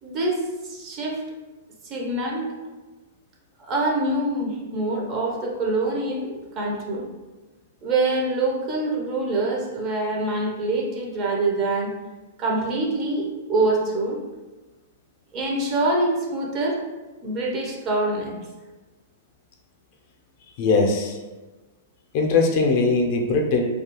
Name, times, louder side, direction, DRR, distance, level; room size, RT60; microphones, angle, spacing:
voice 1, 0.0-1.2 1.8-2.5 3.6-7.1 7.8-11.9 12.4-14.2 15.3-16.8 17.2-18.4, right 2 dB, 35° right, -1 dB, 0.5 m, -25 dB
voice 2, 20.6-21.2 22.1-23.6, left 3 dB, 50° left, 2 dB, 0.4 m, -20 dB
2.3 x 2.2 x 2.9 m, 1.2 s
hypercardioid pair, 135°, 0 cm